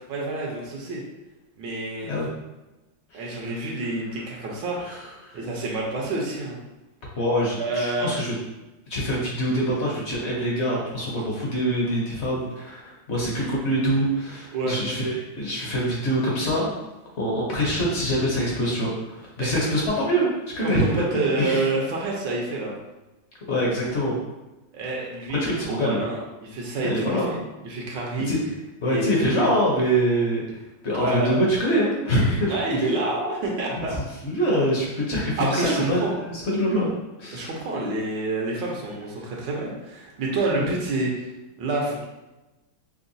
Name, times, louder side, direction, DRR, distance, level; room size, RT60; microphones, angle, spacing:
voice 1, 0.1-1.0 1.6-2.1 3.1-4.8 5.3-6.6 7.6-8.1 14.5-14.8 19.4-19.7 20.6-22.8 24.7-27.4 27.6-28.3 28.9-29.5 30.9-31.3 32.5-34.0 35.4-36.1 37.3-41.3 41.6-42.0, right 2 dB, 75° right, -2 dB, 1.4 m, -28 dB
voice 2, 3.1-3.4 4.8-5.0 5.2-5.4 7.2-8.3 8.9-16.7 17.2-20.3 20.6-21.6 23.5-24.2 25.4-26.0 26.8-27.4 28.3-28.4 28.8-32.9 34.2-36.0 36.3-36.9 37.2-37.5 40.5-40.7, equal, 50° left, -4 dB, 0.9 m, -24 dB
5.7 x 2.2 x 2.6 m, 1.0 s
omnidirectional pair, 2.0 m